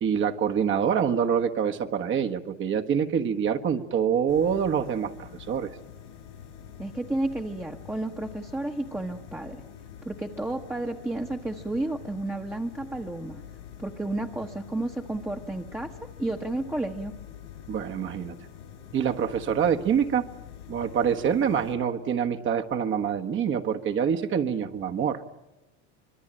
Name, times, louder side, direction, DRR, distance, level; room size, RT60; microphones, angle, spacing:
voice 1, 0.0-5.7 17.7-18.3 18.9-20.2 20.7-25.2, right 7 dB, 35° right, 5 dB, 1.4 m, -26 dB
sound 1, 4.3-21.7, left 9 dB, 85° left, 7.7 m, -46 dB
voice 2, 6.8-9.6 10.0-13.4 13.8-17.1, right 2 dB, 5° right, 1 dB, 1.3 m, -32 dB
25.5 x 21.5 x 8.9 m, 1.0 s
supercardioid pair, 125°, 34 cm